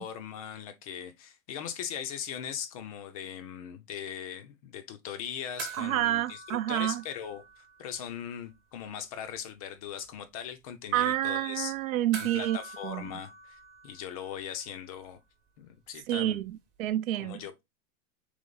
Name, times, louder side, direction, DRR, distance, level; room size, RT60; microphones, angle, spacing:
voice 1, 0.0-6.4 6.7-11.7 12.2-15.2 15.6-16.4 17.2-17.6, left 9 dB, 30° left, 0.4 m, -40 dB
sound 1, 5.6-8.3 8.5-8.6 12.1-14.7 16.9-17.0, right 5 dB, 25° right, 0.9 m, -45 dB
voice 2, 5.8-7.0 10.9-12.6 12.8-13.1 16.1-17.4, right 13 dB, 80° right, 0.5 m, -29 dB
3.3 x 3.1 x 3.8 m
hypercardioid pair, 140°, 40 cm